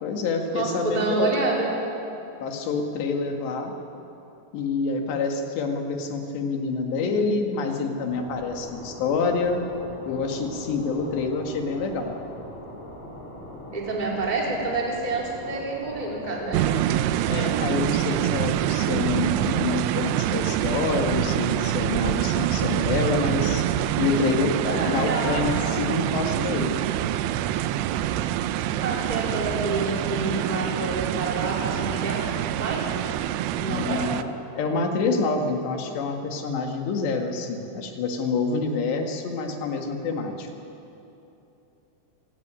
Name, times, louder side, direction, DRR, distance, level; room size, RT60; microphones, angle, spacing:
voice 1, 0.0-1.3 2.4-3.7 4.5-9.6 10.0-12.2 17.3-23.7 24.0-26.9 33.7-34.3 34.6-40.5, left 4 dB, 80° left, 3 dB, 4.1 m, -27 dB
voice 2, 0.5-1.7 13.7-16.6 24.7-25.5 28.6-32.8 33.5-34.0, right 3 dB, 10° right, -3 dB, 3.4 m, -28 dB
sound 1, 8.1-16.9, left 1 dB, 45° left, 5.3 m, -41 dB
sound 2, 16.5-34.2, right 12 dB, 85° right, 2.9 m, -26 dB
27.0 x 15.5 x 8.9 m, 2.9 s
omnidirectional pair, 4.9 m